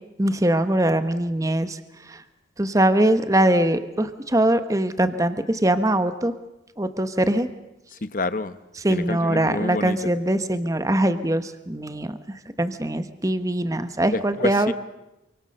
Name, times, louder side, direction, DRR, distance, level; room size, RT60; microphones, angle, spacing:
voice 1, 0.2-1.8 2.1-2.2 2.6-6.3 6.8-7.5 8.8-14.7, right 1 dB, 20° right, 1.0 m, -22 dB
voice 2, 7.9-8.6 8.9-10.1 14.1-14.7, left 2 dB, 45° left, 1.0 m, -28 dB
27.5 x 24.5 x 6.6 m
head